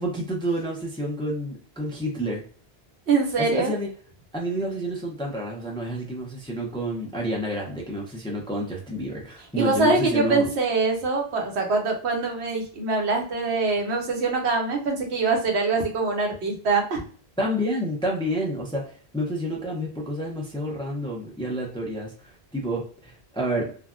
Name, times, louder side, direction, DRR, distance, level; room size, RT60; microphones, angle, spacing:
voice 1, 0.0-2.4 3.4-3.9 4.3-10.5 17.4-23.7, equal, 5° left, -1 dB, 0.4 m, -29 dB
voice 2, 3.1-3.7 9.6-17.0, right 3 dB, 85° right, 1 dB, 1.1 m, -24 dB
3.4 x 2.2 x 2.4 m, 0.44 s
omnidirectional pair, 1.1 m